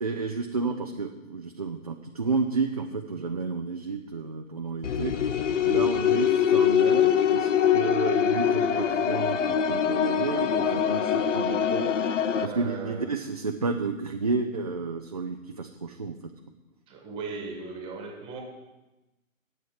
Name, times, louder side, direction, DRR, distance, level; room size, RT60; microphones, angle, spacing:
voice 1, 0.0-5.3 5.6-11.9 12.4-16.3, right 4 dB, 30° right, 3 dB, 0.4 m, -31 dB
sound 1, 4.8-12.5, left 8 dB, 65° left, 0.7 m, -23 dB
voice 2, 12.3-13.1 16.9-18.4, right 4 dB, 15° right, 2 dB, 1.6 m, -38 dB
8.0 x 7.6 x 8.8 m, 1.0 s
figure-of-eight pair, 140°, 41 cm